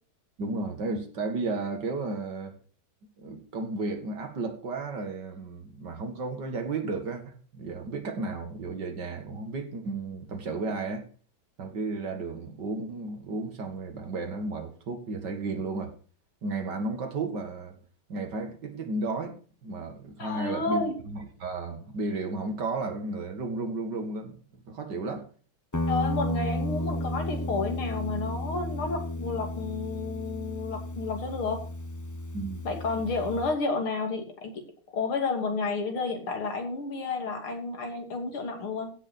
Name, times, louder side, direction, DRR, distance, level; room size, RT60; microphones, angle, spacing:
voice 1, 0.4-2.5 3.2-11.0 11.6-15.9 16.4-17.8 18.1-24.4 24.7-25.2 32.3-32.6, right 3 dB, 55° right, 2.5 m, -33 dB
voice 2, 20.2-21.0 25.9-31.6 32.7-34.6 34.9-38.9, left 3 dB, 85° left, 3.5 m, -31 dB
Guitar, 25.7-33.6, left 1 dB, 20° left, 0.5 m, -33 dB
16.0 x 6.7 x 4.3 m
omnidirectional pair, 2.3 m